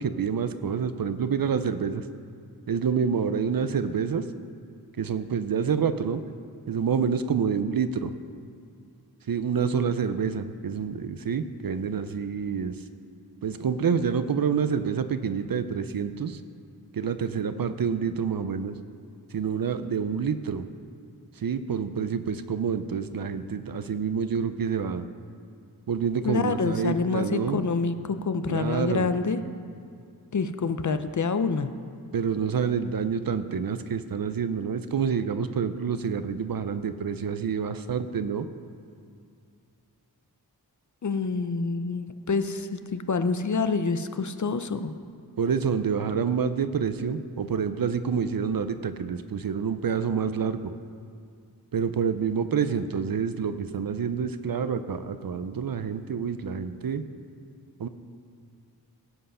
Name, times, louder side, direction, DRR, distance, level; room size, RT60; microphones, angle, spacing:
voice 1, 0.0-2.0 2.7-4.2 5.0-6.2 6.7-8.1 9.3-12.8 13.4-16.4 16.9-18.8 19.3-20.6 21.4-25.1 25.9-27.6 28.5-29.1 32.1-38.5 45.4-50.7 51.7-57.0 57.8-57.9, right 6 dB, 60° right, 11 dB, 0.7 m, -27 dB
voice 2, 26.2-29.4 30.3-31.7 41.0-44.9, left 4 dB, 50° left, 10 dB, 0.7 m, -27 dB
17.0 x 8.0 x 5.6 m, 2.4 s
wide cardioid pair, 85°, 39 cm